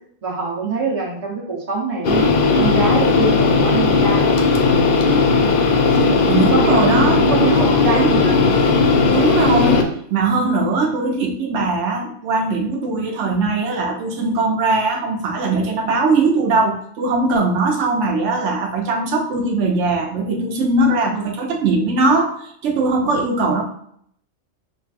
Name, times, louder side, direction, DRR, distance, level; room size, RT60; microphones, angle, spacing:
voice 1, 0.2-2.2 2.6-4.4 6.5-8.4 10.3-10.6, right 3 dB, 35° right, -3 dB, 0.9 m, -24 dB
sound 1, 2.0-9.8, left 4 dB, 60° left, 0.6 m, -16 dB
voice 2, 6.3-7.5 7.9-8.2 9.1-23.6, right 3 dB, 80° right, 1 dB, 0.9 m, -20 dB
5.7 x 2.6 x 2.4 m, 0.66 s
omnidirectional pair, 1.2 m